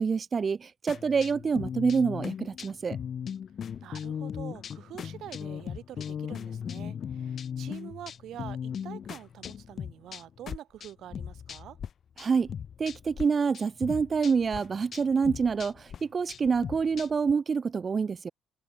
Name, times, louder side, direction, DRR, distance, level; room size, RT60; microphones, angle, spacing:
voice 1, 0.0-3.0 12.2-12.5 12.8-18.3, right 5 dB, 40° right, 0.4 m, -27 dB
sound 1, 0.9-11.9 12.2-13.2 13.5-17.3, left 8 dB, 55° left, 0.4 m, -38 dB
voice 2, 3.8-11.8, right 12 dB, 75° right, 0.7 m, -46 dB
cardioid pair, 90°, 0 cm